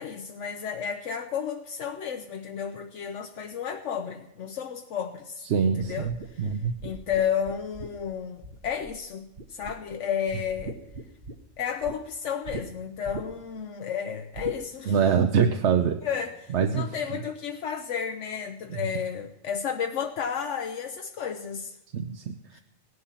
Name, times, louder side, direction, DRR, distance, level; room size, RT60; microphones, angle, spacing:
voice 1, 0.0-6.5 6.8-10.8 11.6-15.0 16.0-21.8 22.5-22.6, left 7 dB, 80° left, 5 dB, 1.1 m, -32 dB
voice 2, 5.5-6.7 14.9-16.0 16.5-17.2 21.9-22.6, right 6 dB, 70° right, 7 dB, 1.1 m, -25 dB
sound 1, 5.8-9.0 9.4-10.0 10.3-12.0 12.4-12.6 13.0-13.6 14.3-14.6, right 3 dB, 50° right, 1.2 m, -40 dB
17.0 x 11.0 x 5.8 m, 0.87 s
omnidirectional pair, 1.2 m